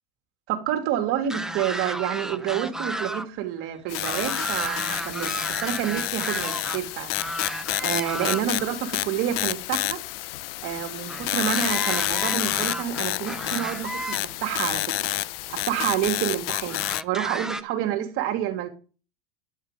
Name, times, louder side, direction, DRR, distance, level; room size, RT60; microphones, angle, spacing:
voice 1, 0.5-7.2 7.8-10.0 10.6-15.1 15.5-18.7, right 11 dB, 50° right, 2.8 m, -28 dB
sound 1, 1.2-3.3 3.6-6.8 7.1-8.7 11.1-14.2 15.1-15.2 16.7-17.6, right 1 dB, ahead, 0.5 m, -33 dB
sound 2, 3.9-17.0, left 19 dB, 80° left, 0.6 m, -29 dB
11.0 x 9.5 x 5.2 m
supercardioid pair, 150°, 29 cm